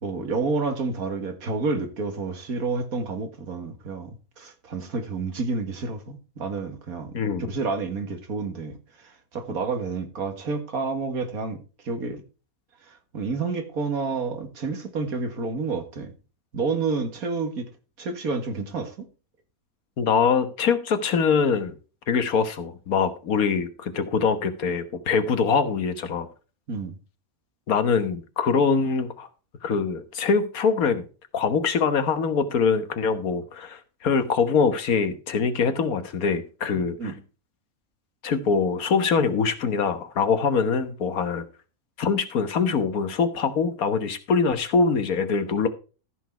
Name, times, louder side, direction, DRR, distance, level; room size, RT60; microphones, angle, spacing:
voice 1, 0.0-7.1 7.5-12.2 12.8-16.1 16.5-17.7 18.0-19.1 26.7-27.0 37.0-37.2, right 4 dB, 80° right, 2.2 m, -29 dB
voice 2, 20.0-21.7 22.1-26.3 27.7-29.3 29.6-31.1 31.3-36.9 38.2-41.4 42.0-45.7, left 5 dB, 80° left, 1.7 m, -23 dB
14.0 x 6.2 x 4.5 m
omnidirectional pair, 1.5 m